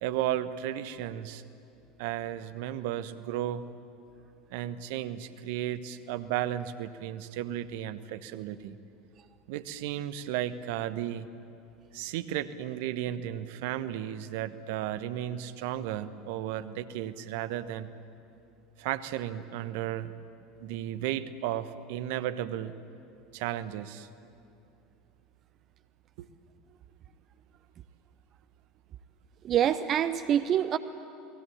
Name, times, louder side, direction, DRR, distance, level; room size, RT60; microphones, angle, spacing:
voice 1, 0.0-1.4 2.0-3.7 4.5-8.8 9.5-11.3 11.9-17.9 18.8-20.1 20.6-22.7 23.3-24.1 26.2-26.3, right 12 dB, 65° right, 13 dB, 1.0 m, -34 dB
voice 2, 29.4-30.8, right 10 dB, 40° right, 12 dB, 0.8 m, -25 dB
29.5 x 20.0 x 8.6 m, 2.6 s
figure-of-eight pair, 75°, 0 cm